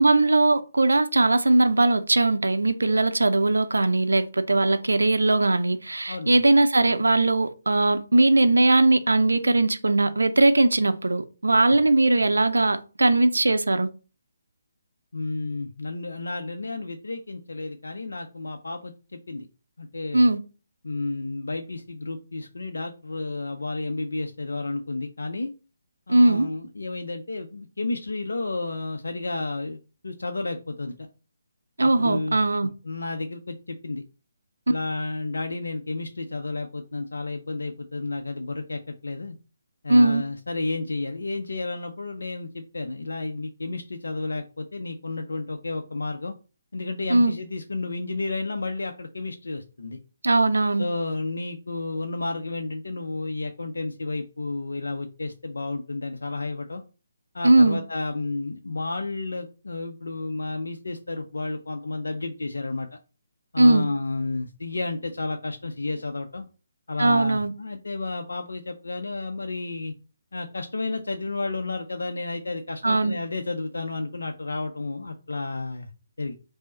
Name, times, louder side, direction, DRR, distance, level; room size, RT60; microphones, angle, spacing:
voice 1, 0.0-13.9 20.1-20.4 26.1-26.5 31.8-32.7 39.9-40.2 47.1-47.3 50.2-50.9 57.4-57.8 63.6-63.8 67.0-67.5 72.8-73.2, right 2 dB, 70° right, 0.4 m, -20 dB
voice 2, 15.1-19.5 19.8-20.3 20.8-25.5 26.1-29.8 30.0-31.1 31.8-32.4 32.8-34.0 34.7-39.4 39.8-46.3 46.7-50.0 50.8-56.8 57.3-62.9 63.5-66.5 66.9-69.9 70.3-75.9 76.2-76.3, left 3 dB, 65° left, 0.5 m, -31 dB
5.1 x 2.0 x 4.1 m
figure-of-eight pair, 145°, 0 cm